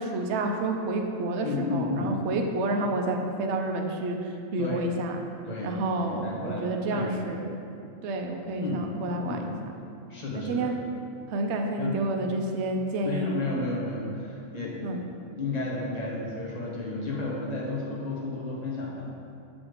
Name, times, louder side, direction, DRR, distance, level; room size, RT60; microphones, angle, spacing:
voice 1, 0.0-4.2 4.5-5.2 5.6-7.4 8.0-9.5 10.3-10.7 11.3-13.3 14.8-15.0, right 2 dB, 65° right, 3 dB, 0.8 m, -29 dB
voice 2, 1.4-2.2 4.6-4.9 5.5-7.3 8.6-8.8 9.2-9.5 10.1-10.7 11.8-12.2 13.0-15.0 15.4-19.1, left 3 dB, 35° left, -4 dB, 0.9 m, -33 dB
6.2 x 3.1 x 4.9 m, 2.5 s
omnidirectional pair, 1.4 m